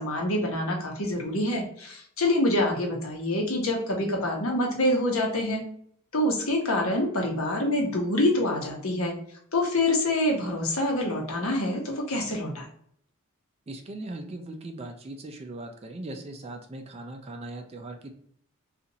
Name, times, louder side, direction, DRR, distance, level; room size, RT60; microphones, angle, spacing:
voice 1, 0.0-5.6 6.1-9.1 9.5-12.6, left 1 dB, 65° left, 0 dB, 0.9 m, -26 dB
voice 2, 13.7-18.1, right 2 dB, 30° right, 4 dB, 0.4 m, -39 dB
2.8 x 2.5 x 4.0 m, 0.66 s
head